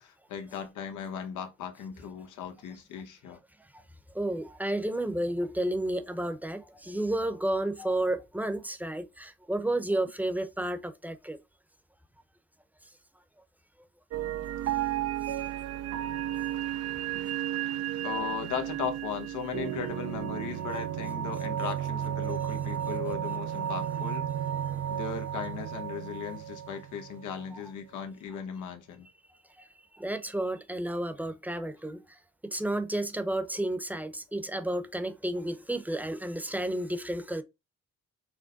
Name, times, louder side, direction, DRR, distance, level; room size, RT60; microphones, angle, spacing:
voice 1, 0.0-3.4 7.8-7.9 18.0-24.3 24.9-29.1, left 7 dB, 90° left, 1.1 m, -37 dB
voice 2, 4.1-11.4 27.5-27.6 29.9-32.0 32.4-37.4, right 1 dB, 5° right, 0.8 m, -31 dB
sound 1, 14.1-27.5, right 11 dB, 55° right, 0.5 m, -33 dB
6.3 x 2.1 x 3.8 m
cardioid pair, 90°, 30 cm